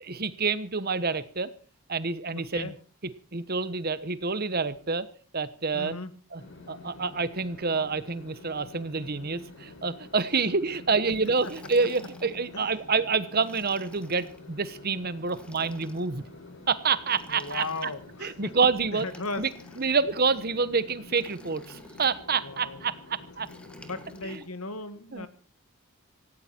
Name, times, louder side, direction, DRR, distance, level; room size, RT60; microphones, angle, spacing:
voice 1, 0.1-1.5 1.9-2.7 3.3-5.1 5.3-6.0 6.3-6.4 6.7-16.2 16.7-17.9 18.2-19.1 19.4-19.5 19.8-23.5 24.2-24.4 25.1-25.3, right 4 dB, 45° right, 15 dB, 1.1 m, -28 dB
voice 2, 2.3-2.7 5.7-6.1 12.5-12.7 17.3-18.5 18.9-19.5 22.4-22.8 23.8-25.3, left 3 dB, 90° left, 11 dB, 2.2 m, -37 dB
sound 1, 6.4-24.4, left 3 dB, 60° left, 5.4 m, -48 dB
Liquid, 11.0-12.5 13.3-14.4 15.2-16.1 17.0-18.2 18.9-20.1 21.1-22.2 23.4-24.5, left 1 dB, 5° left, 1.9 m, -52 dB
17.5 x 17.0 x 4.5 m, 0.40 s
head